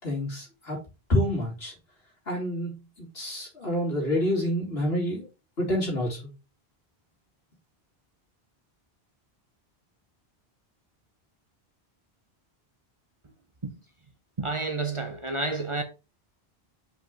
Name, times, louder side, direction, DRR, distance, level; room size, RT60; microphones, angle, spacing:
voice 1, 0.0-0.8 1.1-1.7 2.3-2.8 3.1-5.3 5.6-6.3, left 1 dB, 75° left, 3.3 m, -27 dB
voice 2, 14.4-15.8, right 3 dB, 35° right, 0.8 m, -29 dB
5.4 x 5.1 x 3.8 m
omnidirectional pair, 1.1 m